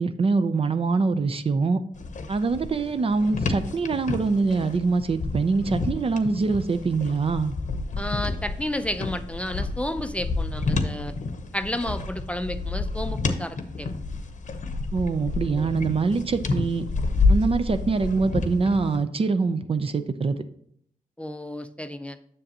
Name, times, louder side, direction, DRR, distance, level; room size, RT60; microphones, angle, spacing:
voice 1, 0.0-1.8 2.3-7.5 14.9-16.9 17.3-20.4, right 4 dB, 40° right, 10 dB, 0.5 m, -24 dB
sound 1, 1.9-19.0, left 3 dB, 60° left, 0.8 m, -29 dB
voice 2, 8.0-11.1 11.5-13.9 15.5-15.7 21.2-22.2, left 1 dB, 10° left, 9 dB, 0.5 m, -32 dB
7.5 x 6.6 x 2.8 m, 0.65 s
cardioid pair, 70°, 15 cm